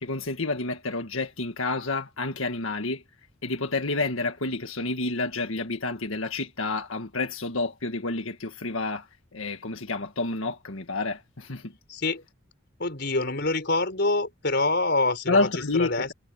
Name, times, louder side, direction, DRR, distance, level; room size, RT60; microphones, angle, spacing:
voice 1, 0.0-3.0 3.4-9.1 9.3-11.7 15.3-16.1, left 3 dB, 75° left, 1.8 m, -29 dB
voice 2, 11.9-12.2 12.8-16.1, left 2 dB, 50° left, 4.7 m, -26 dB
head